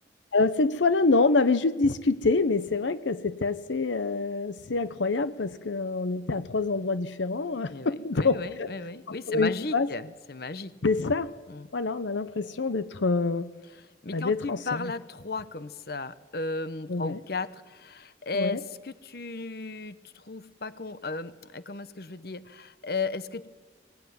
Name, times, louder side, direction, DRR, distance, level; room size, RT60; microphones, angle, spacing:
voice 1, 0.3-8.7 9.1-9.9 10.8-11.3 11.7-13.5 14.1-14.9 16.9-17.2 18.3-18.6, left 3 dB, 85° left, 13 dB, 0.8 m, -26 dB
voice 2, 7.7-10.8 11.5-11.7 14.0-23.5, left 3 dB, 55° left, 14 dB, 0.9 m, -35 dB
23.0 x 18.0 x 9.4 m, 1.3 s
head